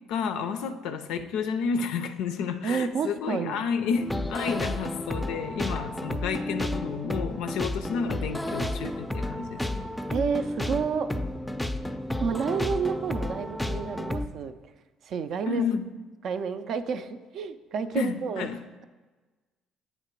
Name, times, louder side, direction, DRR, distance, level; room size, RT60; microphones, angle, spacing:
voice 1, 0.0-9.9 15.5-15.9 17.9-18.6, left 6 dB, 75° left, 9 dB, 0.4 m, -31 dB
voice 2, 2.6-3.6 10.1-11.1 12.2-14.5 15.0-15.6 16.2-18.5, right 6 dB, 60° right, 11 dB, 0.4 m, -30 dB
sound 1, 3.9-14.3, left 1 dB, 10° left, 0.4 m, -32 dB
8.2 x 3.0 x 4.4 m, 1.3 s
supercardioid pair, 65°, 0 cm